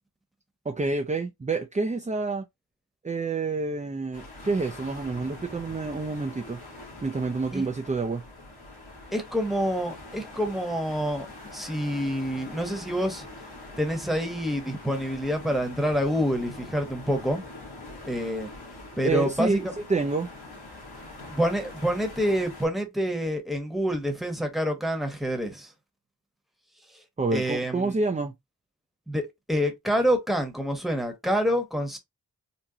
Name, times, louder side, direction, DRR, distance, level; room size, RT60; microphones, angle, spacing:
voice 1, 0.7-2.4 3.0-6.6 7.0-8.2 19.0-20.3 27.2-28.3, right 3 dB, 20° right, 0.5 m, -28 dB
sound 1, 4.1-22.7, left 2 dB, 65° left, 1.7 m, -44 dB
voice 2, 9.1-11.3 11.5-13.3 13.8-17.4 18.1-18.5 19.0-19.7 21.3-25.7 27.3-28.0 29.1-32.0, equal, ahead, 1.1 m, -27 dB
3.9 x 2.2 x 2.8 m
cardioid pair, 45°, 41 cm